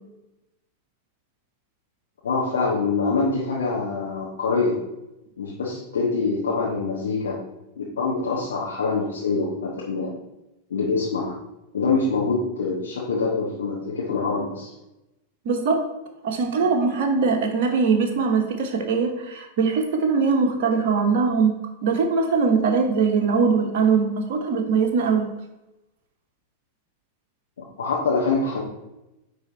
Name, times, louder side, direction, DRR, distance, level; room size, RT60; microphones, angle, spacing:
voice 1, 2.2-4.8 5.4-7.4 7.8-10.1 10.7-11.4 11.7-14.7 27.8-28.6, left 4 dB, 65° left, -4 dB, 1.3 m, -25 dB
voice 2, 15.4-15.8 16.2-21.6 21.8-25.3, right 5 dB, 50° right, 3 dB, 1.0 m, -21 dB
9.3 x 3.5 x 4.1 m, 0.94 s
figure-of-eight pair, 90°, 0 cm